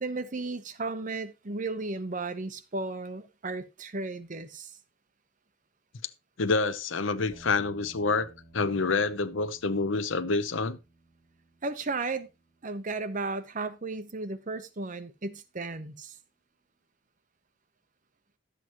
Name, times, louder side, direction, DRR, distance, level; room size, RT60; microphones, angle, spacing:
voice 1, 0.0-4.7 11.6-12.3 12.6-16.2, right 3 dB, 40° right, 0.9 m, -34 dB
voice 2, 6.4-10.8, left 3 dB, 85° left, 0.8 m, -27 dB
sound 1, 7.3-15.6, right 1 dB, 15° left, 3.2 m, -58 dB
12.0 x 7.9 x 3.0 m
head